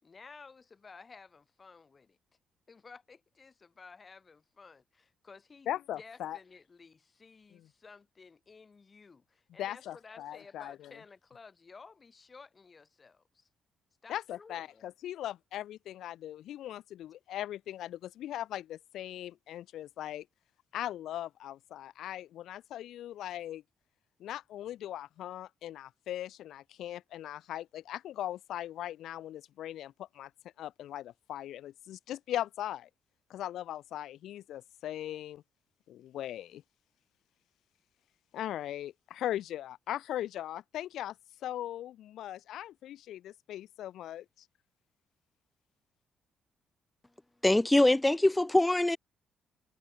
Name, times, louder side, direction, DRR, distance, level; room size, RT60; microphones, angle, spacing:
voice 1, 0.0-2.2 2.7-5.7 6.0-13.5 14.0-14.9, left 4 dB, 35° left, 7.6 m, -54 dB
voice 2, 5.7-6.4 7.5-7.7 9.6-10.9 14.1-20.3 20.7-23.6 24.2-30.3 30.6-32.9 33.3-35.4 35.9-36.6 38.3-41.2 41.4-44.2, left 12 dB, 80° left, 0.9 m, -39 dB
voice 3, 47.4-49.0, left 1 dB, 10° left, 0.3 m, -23 dB
cardioid pair, 90°, 0 cm